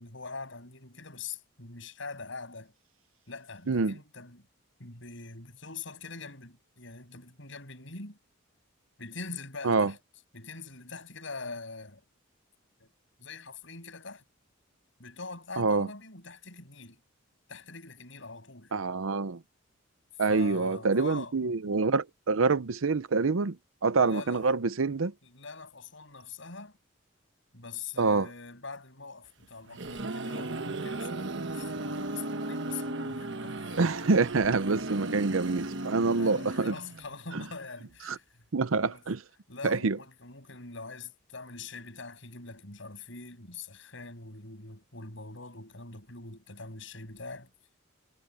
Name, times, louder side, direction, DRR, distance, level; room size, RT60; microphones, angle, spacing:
voice 1, 0.0-2.7 3.3-4.5 4.8-8.2 9.0-10.0 10.3-12.0 12.8-12.9 13.2-14.2 15.0-17.0 17.5-18.7 20.3-21.3 24.0-24.5 25.2-26.8 27.5-33.9 36.0-38.2 38.8-39.0 39.5-47.5, left 4 dB, 65° left, 7.9 m, -43 dB
voice 2, 15.6-15.9 18.7-19.4 20.2-23.6 23.8-25.1 28.0-28.3 33.8-36.7 37.3-37.4 38.1-38.2 38.5-39.2 39.6-40.0, right 4 dB, 80° right, 0.7 m, -26 dB
sound 1, 29.4-37.1, right 2 dB, 60° right, 1.3 m, -36 dB
head